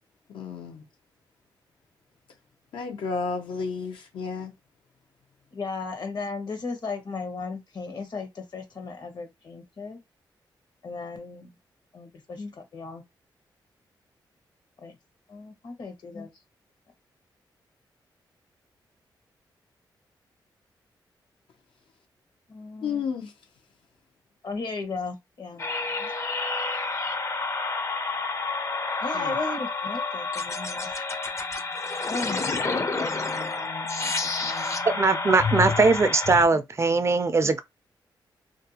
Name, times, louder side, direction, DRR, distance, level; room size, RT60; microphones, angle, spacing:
voice 1, 0.3-0.8 2.7-4.5 22.8-23.3 25.5-25.7 26.0-26.1 29.1-29.3, left 5 dB, 85° left, 0.7 m, -32 dB
voice 2, 5.5-10.0 10.8-11.5 11.9-13.0 14.8-15.0 15.3-16.3 22.5-23.0 24.4-25.6 29.0-30.9 32.1-34.7 37.4-37.5, left 4 dB, 60° left, 0.9 m, -36 dB
sound 1, 25.6-36.5, left 3 dB, 35° left, 0.5 m, -29 dB
voice 3, 34.8-37.6, right 3 dB, 35° right, 0.4 m, -21 dB
2.5 x 2.2 x 2.8 m
cardioid pair, 75°, 8 cm